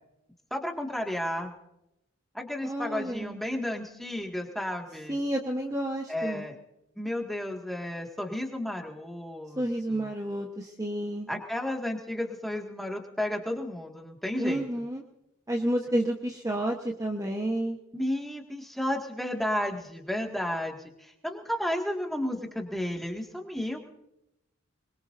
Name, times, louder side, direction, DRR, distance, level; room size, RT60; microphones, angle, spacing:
voice 1, 0.5-1.5 2.3-5.2 6.1-6.6 7.0-9.6 9.9-10.1 11.3-14.6 17.9-23.8, left 1 dB, ahead, 1 dB, 1.9 m, -32 dB
voice 2, 2.6-3.4 5.1-6.5 9.6-11.3 14.4-15.0 15.5-17.8, right 1 dB, 15° right, 1 dB, 1.1 m, -30 dB
24.5 x 22.0 x 2.6 m, 0.86 s
head